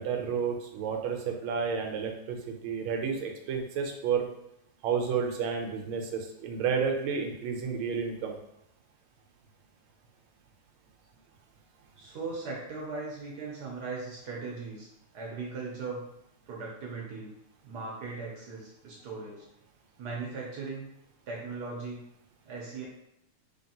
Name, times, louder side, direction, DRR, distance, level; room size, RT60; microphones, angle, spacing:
voice 1, 0.0-4.3 4.8-8.4, right 6 dB, 80° right, 3 dB, 1.5 m, -31 dB
voice 2, 12.0-14.9 15.1-16.1 16.5-17.3 17.6-19.5 20.0-20.9 21.3-22.0 22.4-22.9, right 4 dB, 60° right, -2 dB, 1.1 m, -38 dB
4.4 x 3.2 x 2.8 m, 0.80 s
omnidirectional pair, 2.3 m